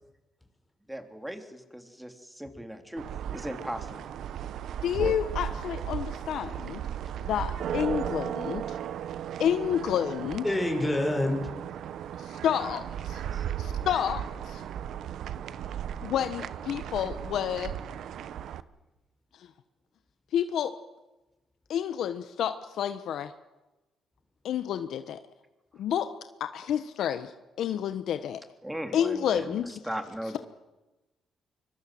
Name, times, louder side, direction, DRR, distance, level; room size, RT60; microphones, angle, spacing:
voice 1, 0.9-3.0 3.3-4.0 5.0-5.2 13.3-13.5 28.6-30.4, right 1 dB, 5° right, 6 dB, 3.5 m, -38 dB
sound 1, 3.0-18.6, right 9 dB, 70° right, 1.0 m, -36 dB
voice 2, 4.8-6.8 7.2-8.8 9.4-10.4 12.2-13.2 13.6-14.6 16.0-17.7 20.3-20.7 21.7-23.3 24.4-25.2 25.8-26.1 26.4-27.3 27.6-28.4 28.9-29.7, left 9 dB, 75° left, 10 dB, 1.2 m, -29 dB
voice 3, 10.4-11.5, left 1 dB, 10° left, 2 dB, 5.9 m, -27 dB
24.5 x 23.0 x 7.8 m, 1.0 s
cardioid pair, 90°, 0 cm